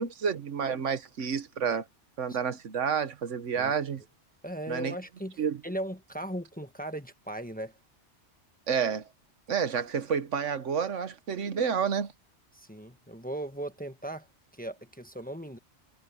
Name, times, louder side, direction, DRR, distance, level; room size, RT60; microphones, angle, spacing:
voice 1, 0.0-1.8 2.2-4.0 4.7-4.9 5.4-5.6 8.7-9.1 9.5-12.1, right 6 dB, 85° right, 1.4 m, -29 dB
voice 2, 4.4-7.7 12.5-14.3 14.5-15.6, right 1 dB, 10° left, 1.1 m, -38 dB
omnidirectional pair, 1.2 m